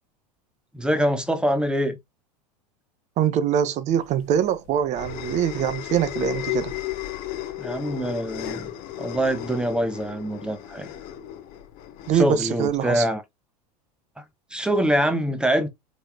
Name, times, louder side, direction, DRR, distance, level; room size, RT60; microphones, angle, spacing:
voice 1, 0.7-2.0 7.6-8.7 9.0-10.9 12.1-13.2 14.5-15.7, equal, 5° right, 0.8 m, -24 dB
voice 2, 3.2-6.7 12.1-13.1, right 9 dB, 35° right, 0.5 m, -23 dB
sound 1, 4.0-12.9, left 13 dB, 45° left, 0.8 m, -34 dB
3.3 x 3.0 x 2.2 m
figure-of-eight pair, 85°, 21 cm